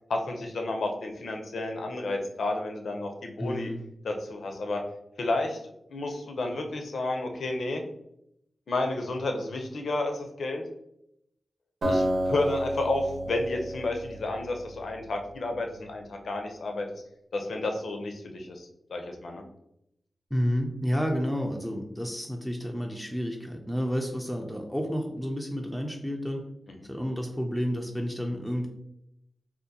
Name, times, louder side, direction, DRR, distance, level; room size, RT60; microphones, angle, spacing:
voice 1, 0.1-3.7 4.0-4.8 5.2-5.6 5.9-7.8 8.7-10.7 11.9-16.9 17.3-19.4 26.7-26.8, left 2 dB, 85° left, 3 dB, 0.5 m, -31 dB
voice 2, 3.4-3.8 20.3-26.4 26.9-28.7, equal, ahead, 1 dB, 0.3 m, -30 dB
Acoustic guitar, 11.8-15.0, equal, 90° right, 0.9 m, -30 dB
3.7 x 2.5 x 2.7 m, 0.79 s
wide cardioid pair, 140°, 0 cm